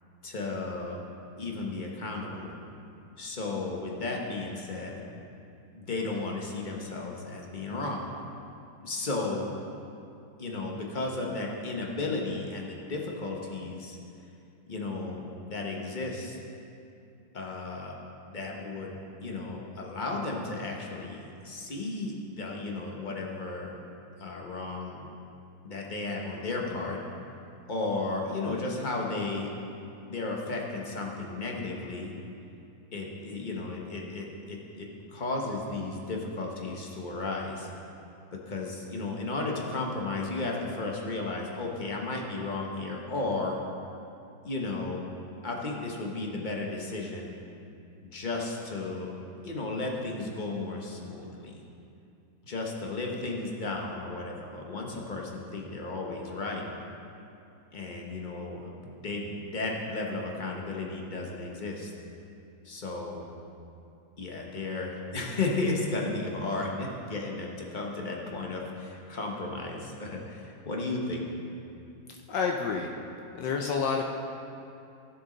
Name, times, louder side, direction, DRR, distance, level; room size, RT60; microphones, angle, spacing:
voice 1, 0.2-1.0 1.4-2.5 3.2-5.0 5.7-8.1 8.8-9.5 10.4-14.0 14.7-16.4 17.3-17.9 18.2-23.7 24.2-25.1 25.6-27.0 27.7-29.5 30.1-32.1 32.9-37.7 38.5-43.6 44.4-45.0 45.4-47.3 48.0-49.1 49.4-51.6 52.4-56.6 57.7-61.9 62.6-63.2 64.2-71.3, left 3 dB, 30° left, -1 dB, 1.0 m, -34 dB
voice 2, 72.3-72.9 73.3-74.0, left 5 dB, 70° left, 1 dB, 1.3 m, -28 dB
15.5 x 6.9 x 3.9 m, 2.7 s
omnidirectional pair, 2.1 m